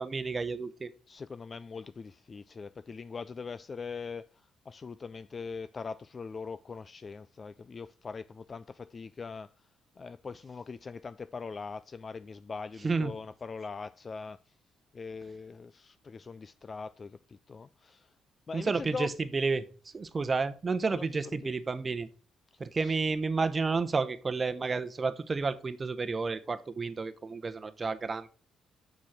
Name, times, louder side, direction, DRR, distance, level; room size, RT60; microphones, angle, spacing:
voice 1, 0.0-0.9 12.8-13.1 18.5-19.6 19.9-22.1 22.6-28.3, right 4 dB, 30° right, 0.9 m, -31 dB
voice 2, 1.1-4.3 4.7-9.5 10.0-14.4 14.9-18.1 18.5-19.1 20.8-21.5 22.8-23.0, left 4 dB, 35° left, 0.3 m, -41 dB
6.3 x 6.3 x 5.8 m
cardioid pair, 80°, 0 cm